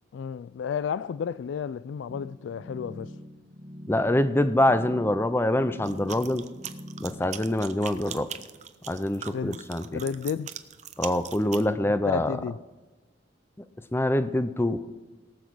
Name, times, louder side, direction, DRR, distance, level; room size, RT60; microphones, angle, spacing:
voice 1, 0.1-3.1 9.3-9.6 9.9-10.5 11.8-12.6, left 7 dB, 75° left, 0.3 m, -32 dB
sound 1, 2.1-7.4, left 1 dB, 15° right, 1.4 m, -43 dB
voice 2, 3.9-6.5 7.0-8.3 8.9-10.0 11.0-12.4 13.9-14.8, left 1 dB, 10° left, 0.5 m, -25 dB
sound 2, 5.8-11.6, right 9 dB, 40° right, 0.6 m, -40 dB
18.0 x 7.2 x 6.2 m
head